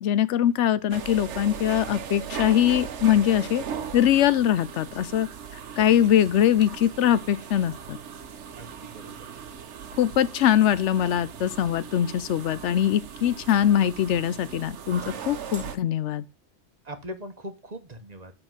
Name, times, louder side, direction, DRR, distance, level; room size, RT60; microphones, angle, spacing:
voice 1, 0.0-3.6 3.9-5.3 5.8-8.0 10.0-16.2, left 10 dB, 85° left, 1.0 m, -22 dB
sound 1, 0.9-15.8, right 7 dB, 85° right, 1.2 m, -38 dB
voice 2, 8.6-9.1 16.9-18.3, equal, 40° right, 1.1 m, -40 dB
7.7 x 4.3 x 6.1 m
omnidirectional pair, 1.2 m